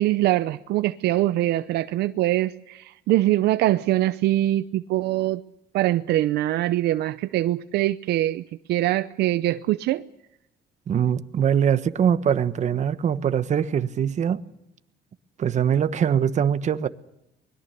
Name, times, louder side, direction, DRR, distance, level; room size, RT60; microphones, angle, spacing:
voice 1, 0.0-2.8 3.1-5.4 5.7-8.4 8.7-10.0, right 15 dB, 75° right, 0.7 m, -23 dB
voice 2, 10.9-14.4 15.4-16.9, right 8 dB, 45° right, 1.2 m, -22 dB
23.5 x 21.5 x 6.8 m
cardioid pair, 110°, 17 cm